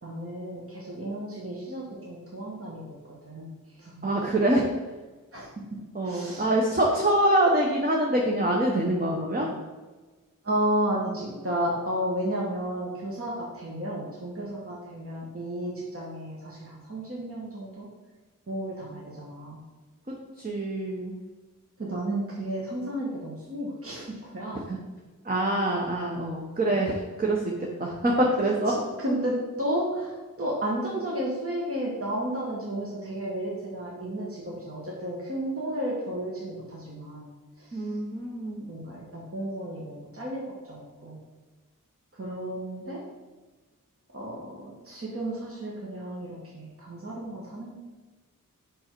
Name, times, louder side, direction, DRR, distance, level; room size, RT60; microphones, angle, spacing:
voice 1, 0.0-3.5 3.7-4.0 5.3-5.5 6.0-6.5 10.4-17.9 18.5-19.6 21.8-24.6 28.7-37.3 37.6-37.8 38.7-41.2 42.1-43.0 44.1-47.7, right 1 dB, 40° right, -5 dB, 1.4 m, -33 dB
voice 2, 4.0-4.7 5.9-9.5 20.4-21.1 24.7-24.8 25.2-27.5 27.8-28.7 37.7-38.6, right 1 dB, 25° right, -1 dB, 0.9 m, -25 dB
5.3 x 5.2 x 4.5 m, 1.3 s
wide cardioid pair, 65°, 33 cm